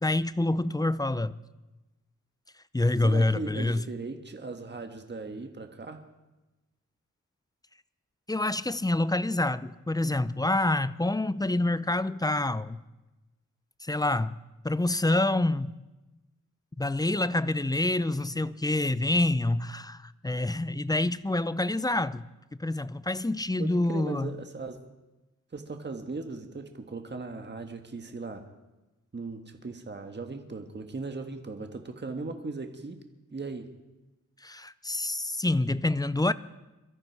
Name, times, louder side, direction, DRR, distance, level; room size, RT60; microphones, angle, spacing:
voice 1, 0.0-1.3 2.7-3.8 8.3-12.8 13.8-14.4 14.6-15.7 16.8-22.3 22.6-24.3 34.4-36.3, left 2 dB, 10° left, 0.5 m, -27 dB
voice 2, 3.0-6.0 23.6-24.8 25.5-28.4 29.1-33.0 33.3-33.7, right 3 dB, 35° right, 1.5 m, -38 dB
22.5 x 13.5 x 4.7 m
wide cardioid pair, 80°, 31 cm